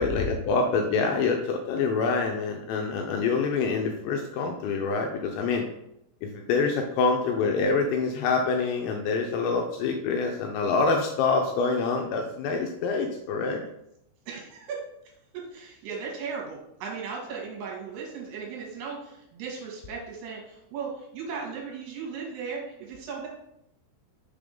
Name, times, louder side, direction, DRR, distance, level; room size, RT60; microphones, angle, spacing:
voice 1, 0.0-5.7 6.2-13.6, left 4 dB, 80° left, 2 dB, 2.6 m, -26 dB
voice 2, 14.3-14.8 15.3-23.3, right 5 dB, 65° right, -2 dB, 3.2 m, -37 dB
6.7 x 3.6 x 5.2 m, 0.80 s
omnidirectional pair, 5.5 m